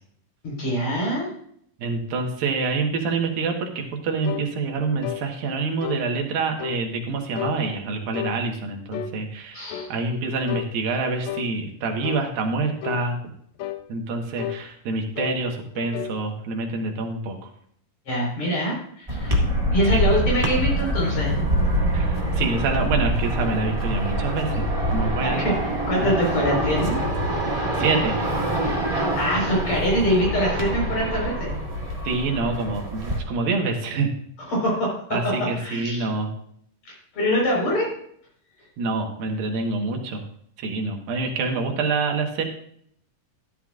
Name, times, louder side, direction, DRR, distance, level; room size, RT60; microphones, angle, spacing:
voice 1, 0.4-1.3 9.5-9.9 18.1-19.4 19.7-21.4 25.2-27.0 29.1-31.5 34.5-34.9 35.2-35.3 35.6-36.1 36.9-37.9, equal, 50° left, -3 dB, 5.8 m, -24 dB
voice 2, 1.8-13.2 13.9-17.4 19.9-20.0 21.9-24.6 24.9-25.4 26.0-26.1 27.4-28.2 32.0-34.1 35.1-36.3 38.8-40.2 40.6-42.4, right 3 dB, 85° right, 2 dB, 3.2 m, -26 dB
sound 1, 4.2-4.5 5.0-5.3 5.8-6.0 6.6-6.8 7.3-7.6 8.1-8.4 8.9-9.2 9.7-9.9 10.5-10.7 11.2-11.5 12.0-12.3 12.8-13.1 13.6-13.8 14.4-14.6 15.2-15.4 15.7-16.2, left 12 dB, 85° left, 1.5 m, -32 dB
sound 2, 19.1-33.2, right 1 dB, 20° right, 0.9 m, -25 dB
13.0 x 11.5 x 2.5 m, 0.65 s
omnidirectional pair, 4.0 m